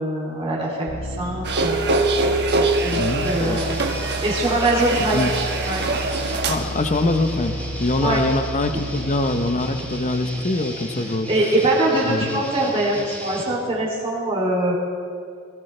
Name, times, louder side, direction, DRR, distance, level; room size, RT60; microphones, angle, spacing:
voice 1, 0.0-1.9 2.2-3.8 4.2-5.3 5.6-5.8 8.0-8.2 11.3-14.7, right 1 dB, 25° right, -5 dB, 2.9 m, -23 dB
sound 1, 0.9-10.7, equal, 80° left, 1.2 m, -32 dB
sound 2, 1.4-6.6, right 3 dB, 50° right, 1.1 m, -23 dB
sound 3, 2.8-13.4, equal, 5° left, 3.6 m, -36 dB
voice 2, 2.9-3.6 5.1-5.3 6.5-11.3 12.1-12.4, left 2 dB, 35° left, 8 dB, 0.8 m, -23 dB
17.5 x 17.0 x 3.3 m, 2.3 s
head